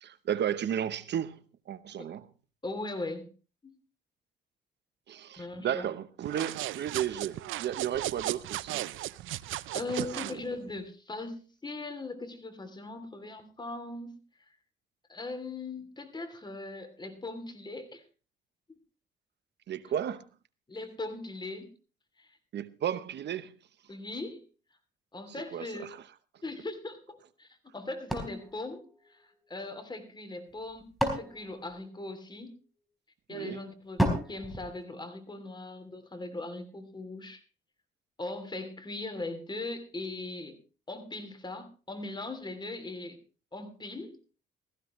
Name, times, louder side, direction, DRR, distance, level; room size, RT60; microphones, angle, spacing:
voice 1, 0.0-1.4 1.7-2.3 5.1-8.8 10.2-10.3 19.7-20.2 22.5-23.5 25.5-26.0 33.3-33.6, right 9 dB, 60° right, 0.9 m, -33 dB
voice 2, 2.6-3.3 3.6-3.8 5.4-5.9 9.7-14.2 15.1-18.0 20.7-21.7 22.2-22.3 23.9-24.5 25.1-25.9 26.4-29.2 29.5-32.6 33.3-37.4 38.2-40.6 40.9-43.2 43.5-44.2, left 2 dB, 20° left, 2.9 m, -39 dB
sound 1, 6.2-10.4, right 15 dB, 80° right, 0.5 m, -36 dB
sound 2, 28.1-29.6 30.5-32.5 34.0-35.6, equal, ahead, 4.2 m, -34 dB
16.5 x 14.5 x 3.1 m
cardioid pair, 90°, 20 cm